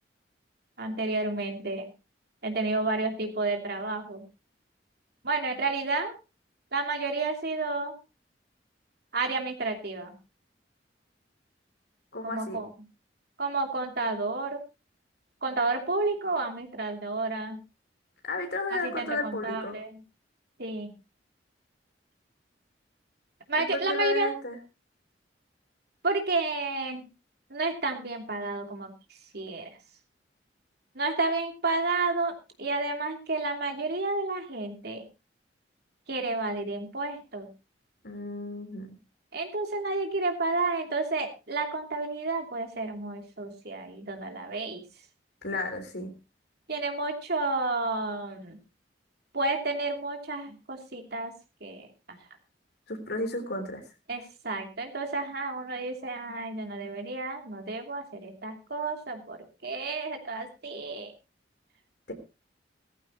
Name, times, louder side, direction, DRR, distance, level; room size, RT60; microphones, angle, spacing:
voice 1, 0.8-1.9 2.4-4.2 5.2-6.1 6.7-7.9 9.1-10.2 12.2-12.7 13.4-14.6 15.4-17.6 18.7-19.9 20.6-20.9 23.5-24.3 26.0-27.1 27.5-28.9 29.3-29.7 30.9-35.0 36.1-37.5 39.3-44.8 46.7-48.6 49.3-51.3 51.6-52.2 54.1-61.1, right 3 dB, 60° right, 4 dB, 3.0 m, -31 dB
voice 2, 12.1-12.7 18.2-19.8 23.6-24.6 38.0-39.0 45.4-46.1 52.9-53.8 62.1-62.2, left 2 dB, 65° left, 5 dB, 3.7 m, -33 dB
17.5 x 14.5 x 3.0 m, 0.28 s
head